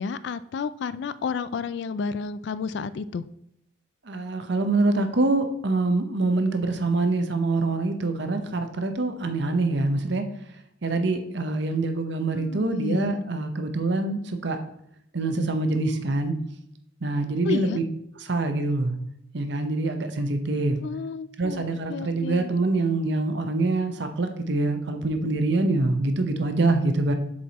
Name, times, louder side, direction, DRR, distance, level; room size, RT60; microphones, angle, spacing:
voice 1, 0.0-3.3 12.3-13.2 17.4-17.8 20.8-22.5, left 5 dB, 55° left, 15 dB, 0.3 m, -31 dB
voice 2, 4.0-10.2 10.8-14.6 15.1-16.3 17.0-17.8 18.2-18.9 19.3-20.8 21.4-27.1, right 2 dB, 60° right, 7 dB, 0.9 m, -25 dB
7.2 x 4.7 x 4.1 m, 0.75 s
head